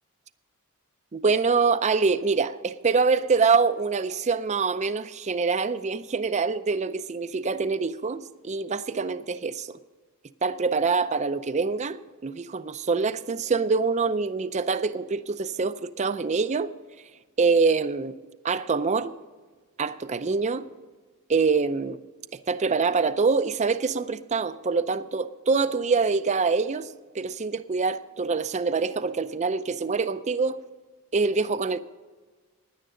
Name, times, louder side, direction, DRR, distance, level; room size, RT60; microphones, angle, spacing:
voice 1, 1.1-9.8 10.4-16.7 17.4-18.2 18.4-19.1 19.8-20.6 21.3-22.0 22.5-26.9 27.1-30.6 31.1-31.8, right 4 dB, 30° right, 0.5 m, -25 dB
16.5 x 10.5 x 3.8 m
head